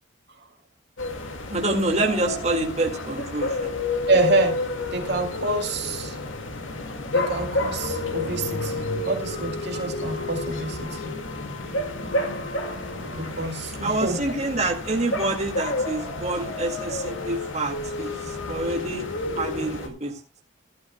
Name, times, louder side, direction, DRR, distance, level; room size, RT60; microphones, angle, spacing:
sound 1, 1.0-19.9, left 2 dB, 75° left, 1.9 m, -30 dB
voice 1, 1.5-3.7 13.8-19.1 19.4-20.2, right 2 dB, 35° right, 1 dB, 2.0 m, -27 dB
voice 2, 4.1-6.2 7.1-11.1 13.1-14.2, right 2 dB, 55° right, 3 dB, 2.3 m, -27 dB
15.5 x 12.5 x 2.2 m, 0.28 s
head